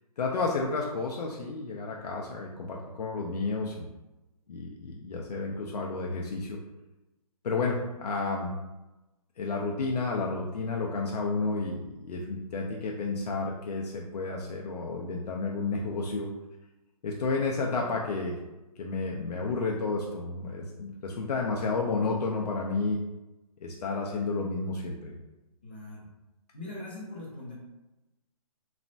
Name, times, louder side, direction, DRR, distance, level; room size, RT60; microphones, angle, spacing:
voice 1, 0.2-3.9 4.5-6.6 7.4-8.5 9.4-16.3 17.0-18.4 18.8-23.0 23.6-25.1, left 3 dB, 85° left, -1 dB, 0.5 m, -31 dB
voice 2, 25.6-26.1 26.5-27.5, left 2 dB, 15° left, -6 dB, 0.4 m, -41 dB
3.1 x 2.1 x 2.6 m, 1.0 s
hypercardioid pair, 170°, 20 cm